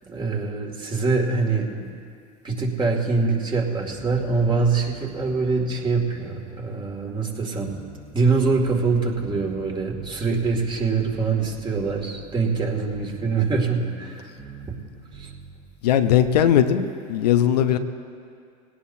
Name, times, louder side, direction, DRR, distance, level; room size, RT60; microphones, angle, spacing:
voice 1, 0.1-2.0 2.4-7.8 8.1-14.3 14.7-14.8 15.1-15.3, right 4 dB, 25° right, 0 dB, 2.5 m, -24 dB
sound 1, 3.9-15.7, right 5 dB, 60° right, 3.0 m, -44 dB
voice 2, 15.8-17.8, left 10 dB, 85° left, 8 dB, 0.8 m, -19 dB
21.5 x 17.5 x 2.8 m, 2.3 s
hypercardioid pair, 95°, 20 cm